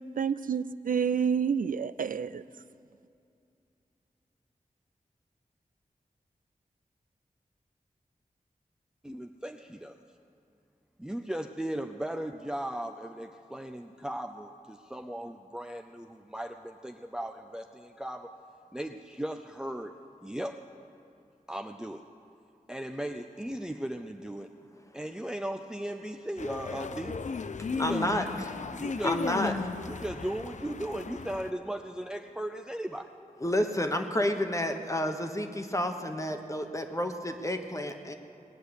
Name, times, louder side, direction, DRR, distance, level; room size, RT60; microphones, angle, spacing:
voice 1, 0.2-2.4, right 7 dB, 75° right, 14 dB, 0.4 m, -28 dB
voice 2, 9.0-10.0 11.0-18.3 18.7-19.9 20.2-20.6 21.5-22.0 22.7-24.5 24.9-27.2 27.7-28.4 28.8-29.5 29.8-33.1, right 1 dB, 5° right, 4 dB, 0.5 m, -37 dB
sound 1, 26.4-31.5, left 5 dB, 55° left, 0.5 m, -35 dB
voice 3, 27.8-28.6 29.0-29.5 33.4-38.1, left 1 dB, 20° left, 5 dB, 1.1 m, -30 dB
19.0 x 6.5 x 9.7 m, 2.6 s
wide cardioid pair, 90°, 14 cm